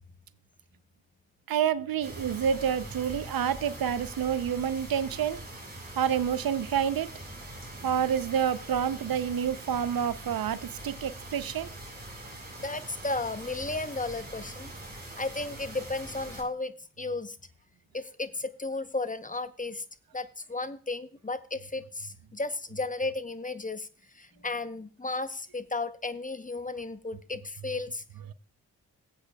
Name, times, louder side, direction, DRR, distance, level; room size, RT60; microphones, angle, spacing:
voice 1, 1.5-5.4 6.0-7.1 7.8-11.7, right 8 dB, 70° right, 0.6 m, -28 dB
sound 1, 2.0-16.4, right 1 dB, 25° right, 4.4 m, -43 dB
voice 2, 12.6-17.4 17.9-19.8 20.1-23.9 24.1-28.0, left 3 dB, 20° left, 0.8 m, -34 dB
17.5 x 8.5 x 2.3 m
cardioid pair, 45°, 37 cm